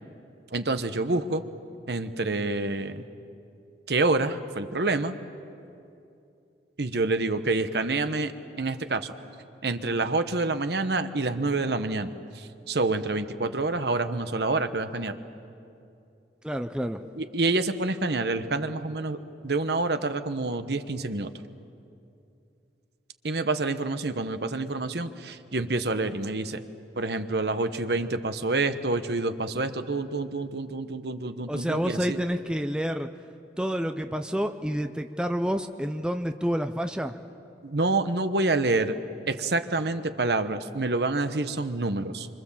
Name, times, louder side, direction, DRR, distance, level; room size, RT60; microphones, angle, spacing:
voice 1, 0.5-1.4 1.9-3.0 3.9-5.2 6.8-9.1 9.6-15.2 17.2-21.3 23.2-26.6 27.0-32.2 37.6-39.0 39.3-42.3, right 2 dB, 65° right, 9 dB, 1.1 m, -27 dB
voice 2, 16.4-17.1 31.5-33.1 33.6-37.2, equal, 5° right, 7 dB, 0.6 m, -28 dB
26.0 x 25.0 x 7.3 m, 2.6 s
head